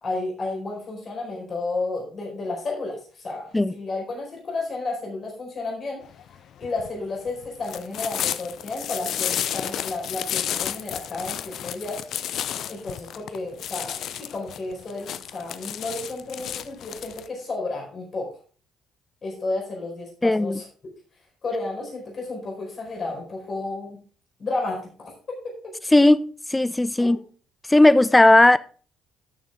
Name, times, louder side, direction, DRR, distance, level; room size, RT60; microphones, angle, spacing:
voice 1, 0.0-6.0 6.6-12.0 12.7-18.3 19.2-20.6 21.4-24.0 24.4-25.1 27.0-27.2, left 3 dB, 45° left, 4.4 m, -32 dB
sound 1, 6.0-17.3, left 10 dB, 65° left, 0.6 m, -31 dB
voice 2, 20.2-20.6 25.9-27.2 27.7-28.6, left 1 dB, 15° left, 0.6 m, -16 dB
12.5 x 6.6 x 3.5 m
hypercardioid pair, 50°, 0 cm